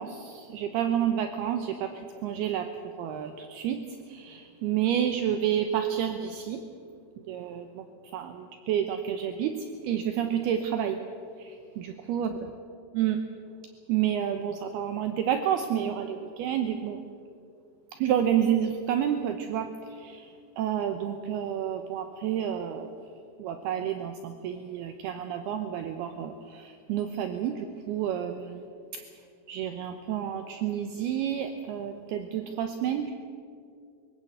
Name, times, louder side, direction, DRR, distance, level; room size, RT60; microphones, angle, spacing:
voice 1, 0.0-2.7 3.0-6.6 7.3-7.9 8.1-11.0 11.4-12.3 12.9-13.2 13.9-17.0 18.0-20.3 20.6-22.9 23.4-28.6 28.9-29.0 29.5-33.1, right 9 dB, 75° right, 7 dB, 2.7 m, -30 dB
24.0 x 17.0 x 8.0 m, 2.4 s
omnidirectional pair, 5.1 m